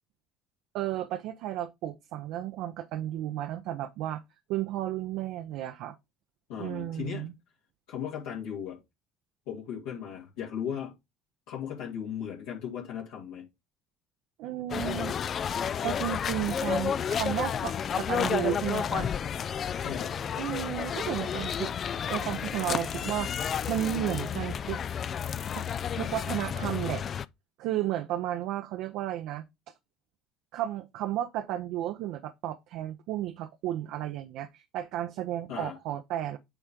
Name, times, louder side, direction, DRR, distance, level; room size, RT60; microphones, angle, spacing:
voice 1, 0.7-4.2 4.5-6.0 6.6-7.3 14.4-15.2 15.8-19.1 20.4-21.7 22.1-23.3 23.7-24.8 25.5-25.7 25.9-27.0 27.6-29.4 30.5-36.4, right 13 dB, 65° right, 0.5 m, -33 dB
voice 2, 6.5-7.3 7.9-8.8 9.5-11.0 11.5-13.4 19.8-20.1 35.5-35.7, left 8 dB, 70° left, 2.4 m, -36 dB
sound 1, 14.7-27.2, left 8 dB, 45° left, 0.3 m, -31 dB
8.9 x 3.3 x 3.7 m
hypercardioid pair, 60°, 0 cm